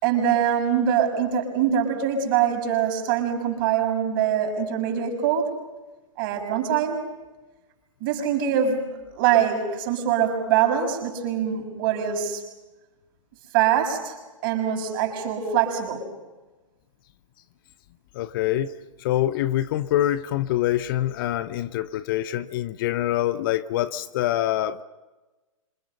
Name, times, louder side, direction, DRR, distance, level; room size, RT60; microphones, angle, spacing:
voice 1, 0.0-5.5 6.2-7.0 8.0-8.8 9.1-12.4 13.5-14.1 14.4-16.1, right 9 dB, 40° right, 6.8 m, -23 dB
voice 2, 18.1-18.7 19.0-24.8, left 13 dB, 40° left, 0.9 m, -25 dB
27.5 x 27.0 x 5.7 m
figure-of-eight pair, 120°, 17 cm